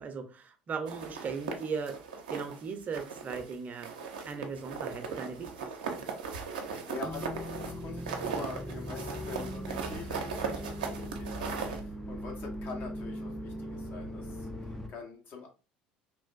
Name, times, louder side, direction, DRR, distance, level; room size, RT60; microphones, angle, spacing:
voice 1, 0.0-2.0 2.3-6.0, right 5 dB, 40° right, 6 dB, 0.6 m, -38 dB
sound 1, 0.9-2.6 2.9-3.5 3.8-11.8, right 5 dB, 80° right, 0.5 m, -38 dB
voice 2, 6.6-15.5, left 5 dB, 50° left, 1 dB, 1.0 m, -45 dB
sound 2, 7.0-14.9, equal, 5° left, 0.4 m, -40 dB
3.2 x 2.4 x 2.3 m, 0.32 s
hypercardioid pair, 70°, 4 cm